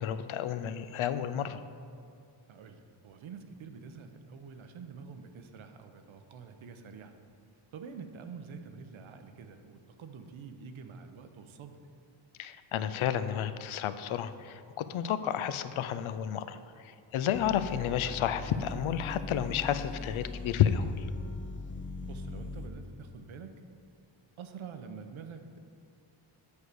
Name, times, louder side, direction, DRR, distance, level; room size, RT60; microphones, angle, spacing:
voice 1, 0.0-1.6 12.4-21.1, left 9 dB, 85° left, 12 dB, 0.6 m, -31 dB
voice 2, 2.5-7.1 7.7-11.8 17.2-17.5 22.0-23.6 24.4-25.6, right 6 dB, 75° right, 7 dB, 0.8 m, -47 dB
sound 1, 17.3-22.7, left 3 dB, 25° left, 0.4 m, -41 dB
8.3 x 4.8 x 6.6 m, 2.4 s
wide cardioid pair, 155°, 48 cm